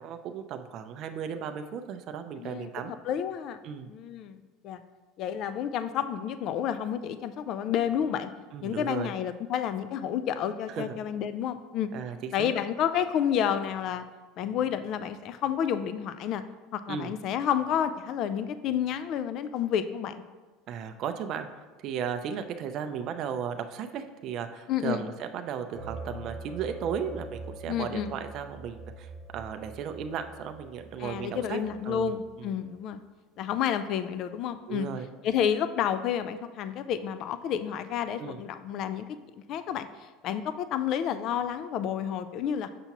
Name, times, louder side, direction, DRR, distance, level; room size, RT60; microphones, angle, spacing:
voice 1, 0.0-2.9 3.6-3.9 8.5-9.1 10.7-10.9 11.9-12.5 16.9-17.2 20.7-21.5 21.8-32.1 32.4-32.5 34.7-35.1 38.2-38.4, right 7 dB, 50° right, 7 dB, 0.4 m, -35 dB
voice 2, 2.4-3.6 3.9-4.4 4.6-4.8 5.2-8.3 8.6-11.9 12.3-14.1 14.4-16.4 16.7-20.2 24.7-25.0 27.7-28.1 31.0-33.0 33.4-34.9 35.2-39.1 39.5-39.9 40.2-42.7, left 9 dB, 50° left, 12 dB, 0.3 m, -30 dB
sound 1, 25.7-32.3, right 2 dB, 15° right, 1.1 m, -44 dB
6.8 x 5.7 x 2.9 m, 1.3 s
supercardioid pair, 125°, 0 cm